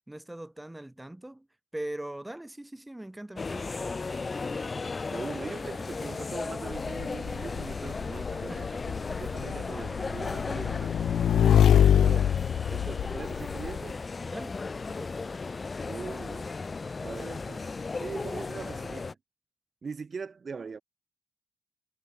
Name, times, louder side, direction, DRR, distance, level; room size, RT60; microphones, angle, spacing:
voice 1, 0.1-1.5 1.7-4.0 8.5-8.7 9.1-9.2 14.3-14.5 14.8-15.2, right 1 dB, 10° right, 4.0 m, -41 dB
sound 1, 3.4-19.1, left 4 dB, 30° left, 0.8 m, -36 dB
voice 2, 5.0-10.9 11.3-12.3 12.7-14.0 15.8-16.5 17.0-19.2 19.8-20.8, right 5 dB, 40° right, 3.5 m, -41 dB
Motorcycle / Engine, 6.7-13.8, left 9 dB, 75° left, 1.0 m, -25 dB
cardioid pair, 125°, 0 cm